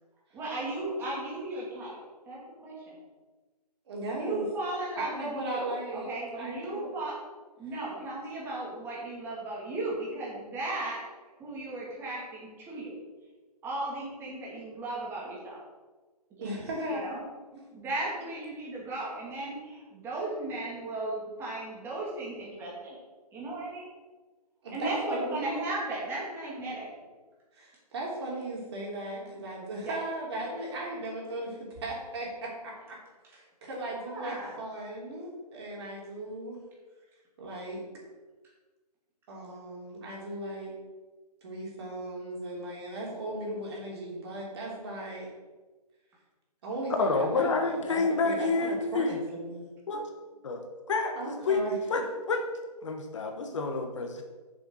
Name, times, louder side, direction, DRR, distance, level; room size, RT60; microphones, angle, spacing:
voice 1, 0.3-2.0 2.2-3.0 4.2-7.1 7.6-11.0 11.4-13.0 13.6-15.6 16.4-16.6 16.9-17.2 17.7-23.0 23.3-23.9 24.7-26.9 29.8-29.9 33.8-34.5, right 2 dB, 10° right, -5 dB, 2.5 m, -36 dB
voice 2, 3.8-4.4 4.9-6.9 16.4-17.2 17.5-17.6 24.6-25.4 27.5-33.0 33.3-36.6 37.4-37.8 39.3-40.7 41.4-45.3 46.6-49.7 51.1-51.7, right 1 dB, 40° right, -3 dB, 3.3 m, -37 dB
voice 3, 47.0-49.2 49.9-50.1 50.4-50.6 50.9-51.6 51.9-52.4 52.8-54.2, left 3 dB, 50° left, 4 dB, 1.3 m, -28 dB
7.1 x 6.9 x 6.3 m, 1.3 s
hypercardioid pair, 155°, 21 cm